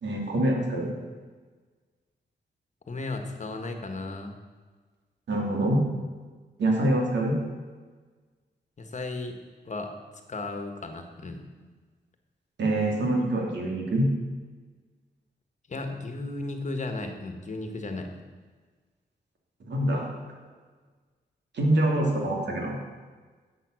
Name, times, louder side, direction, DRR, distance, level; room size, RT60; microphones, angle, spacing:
voice 1, 0.0-0.9 5.3-5.8 6.6-7.3 12.6-14.1 19.7-20.1 21.5-22.8, right 1 dB, 85° right, -1 dB, 2.6 m, -25 dB
voice 2, 2.9-4.3 8.8-9.4 9.6-9.9 10.3-11.4 15.7-18.1, left 2 dB, 45° left, 5 dB, 1.4 m, -34 dB
11.0 x 7.8 x 6.3 m, 1.4 s
wide cardioid pair, 110°, 18 cm